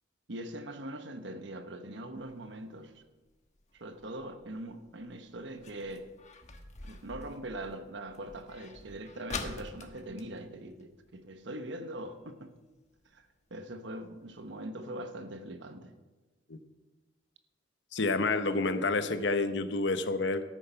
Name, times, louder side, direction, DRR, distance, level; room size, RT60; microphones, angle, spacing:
voice 1, 0.3-3.0 3.7-6.1 6.8-12.5 13.1-13.2 13.5-15.9, right 1 dB, 70° right, 8 dB, 1.1 m, -42 dB
sound 1, 2.2-11.4 11.7-11.8 12.1-12.5 13.0-13.1 13.6-13.7 14.0-14.1 14.5-14.6, left 4 dB, 40° left, 1.3 m, -46 dB
voice 2, 17.9-20.4, left 3 dB, 65° left, 10 dB, 0.9 m, -29 dB
13.5 x 9.2 x 5.7 m, 1.2 s
head